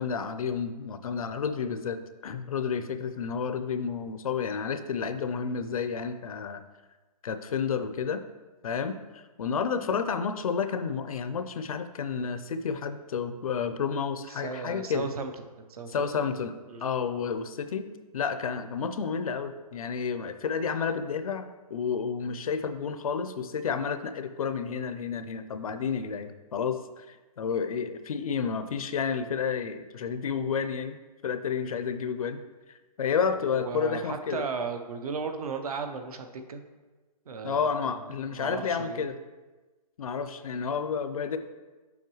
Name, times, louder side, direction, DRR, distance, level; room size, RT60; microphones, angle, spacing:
voice 1, 0.0-6.6 7.2-8.2 8.6-15.1 15.9-16.5 16.8-32.4 33.0-34.4 37.4-39.2 40.0-41.4, left 6 dB, 60° left, 10 dB, 0.5 m, -31 dB
voice 2, 14.3-15.3 15.6-16.3 16.7-16.8 33.6-36.6 37.3-38.0 38.4-39.1, right 5 dB, 65° right, 7 dB, 0.8 m, -35 dB
7.1 x 5.5 x 3.1 m, 1.3 s
hypercardioid pair, 175°, 20 cm